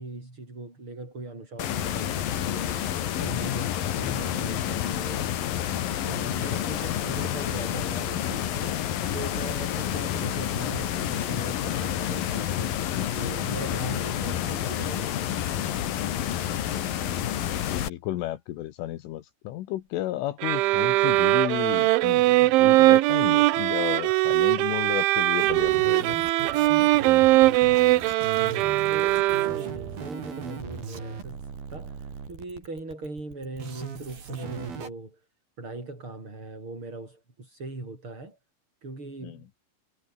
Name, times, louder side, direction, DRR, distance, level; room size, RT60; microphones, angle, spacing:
voice 1, 0.0-2.8 3.2-5.3 6.0-12.9 13.1-15.1 28.3-35.2 35.6-38.4 38.8-39.5, right 2 dB, 25° right, 8.4 m, -40 dB
sound 1, 1.6-17.9, left 11 dB, 60° left, 2.9 m, -29 dB
voice 2, 17.6-26.2 39.2-39.4, left 14 dB, 80° left, 3.9 m, -33 dB
sound 2, 20.4-29.9, right 18 dB, 75° right, 3.2 m, -21 dB
sound 3, 25.4-34.9, right 5 dB, 50° right, 6.6 m, -38 dB
omnidirectional pair, 5.8 m